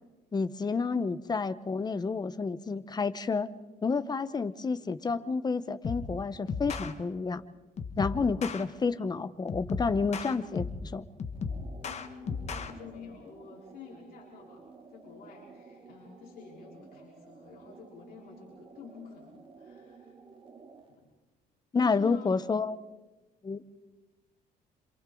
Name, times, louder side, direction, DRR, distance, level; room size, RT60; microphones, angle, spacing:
voice 1, 0.3-3.5 3.8-7.4 8.0-11.0 21.7-22.8 23.4-23.7, left 4 dB, 25° left, 13 dB, 1.0 m, -30 dB
sound 1, 5.8-6.1 6.5-6.9 7.8-8.6 9.5-10.9 11.2-12.7, left 5 dB, 40° left, 1.6 m, -35 dB
sound 2, 11.3-21.0, right 4 dB, 30° right, 3.0 m, -53 dB
voice 2, 11.8-20.1 20.9-21.0 21.8-22.4, left 7 dB, 60° left, -3 dB, 4.5 m, -48 dB
27.5 x 27.0 x 3.9 m, 1.1 s
cardioid pair, 110°, 17 cm